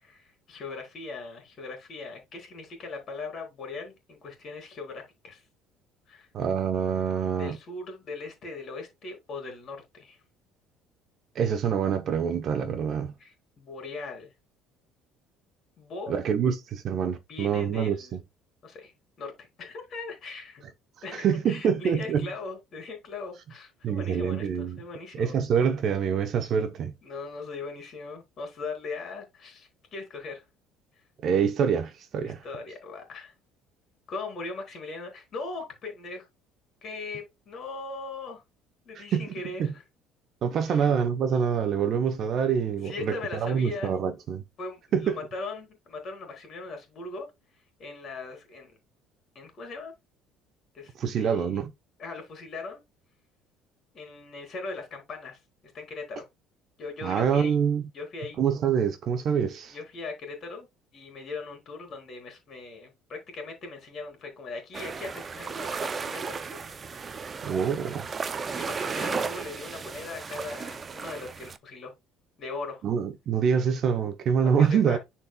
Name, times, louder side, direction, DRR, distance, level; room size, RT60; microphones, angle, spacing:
voice 1, 0.0-5.4 6.1-6.3 7.4-10.2 13.2-14.3 15.8-16.1 17.3-18.2 18.6-18.9 19.2-20.6 21.0-25.4 27.0-30.5 32.2-33.3 34.1-36.3 36.8-38.4 38.9-39.8 40.7-40.9 42.8-43.9 44.6-47.3 47.8-48.8 49.4-49.9 50.7-51.6 52.0-52.8 53.9-55.4 55.7-56.2 56.8-57.6 57.9-58.4 59.7-60.7 60.9-67.2 68.5-71.9 72.4-72.8 74.6-75.0, left 3 dB, 30° left, 3.7 m, -39 dB
voice 2, 6.3-7.6 11.3-13.1 16.1-18.2 21.1-22.3 23.8-24.8 25.1-26.9 31.2-32.4 38.9-39.7 40.4-44.4 44.9-45.2 51.0-51.7 57.0-57.9 58.4-59.7 67.4-68.1 72.8-75.0, right 7 dB, 35° right, 0.9 m, -26 dB
sound 1, 64.7-71.6, right 5 dB, 20° right, 0.4 m, -35 dB
10.5 x 4.4 x 2.3 m
cardioid pair, 175°, 0 cm